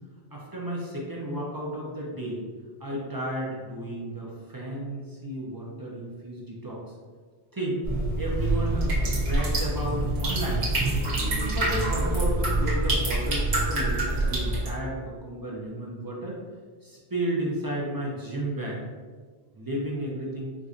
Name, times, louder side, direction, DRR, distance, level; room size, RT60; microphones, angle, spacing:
voice 1, 0.3-2.4 2.8-6.8 7.5-7.8 8.2-10.7 11.2-16.4 16.8-18.8 19.5-20.6, right 1 dB, 30° right, -4 dB, 0.5 m, -33 dB
sound 1, 7.8-14.7, right 2 dB, 70° right, 1.3 m, -26 dB
4.6 x 2.6 x 2.4 m, 1.5 s
omnidirectional pair, 1.1 m